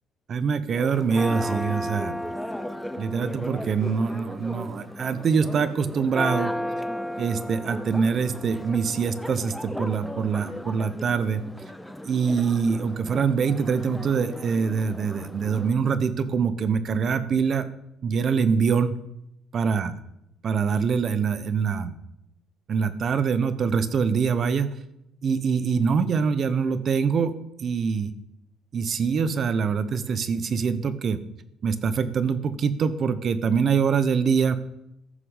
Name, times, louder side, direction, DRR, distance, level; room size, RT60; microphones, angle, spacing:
voice 1, 0.3-2.1 3.0-6.5 7.2-11.4 12.0-17.7 18.0-18.9 19.5-19.9 20.4-21.9 22.7-24.7 25.2-27.3 27.6-28.1 28.7-31.2 31.6-34.6, right 6 dB, 45° right, 13 dB, 1.0 m, -24 dB
Church bell, 0.7-15.7, left 1 dB, 5° left, 0.8 m, -35 dB
14.5 x 6.7 x 5.6 m, 0.82 s
cardioid pair, 115°, 0 cm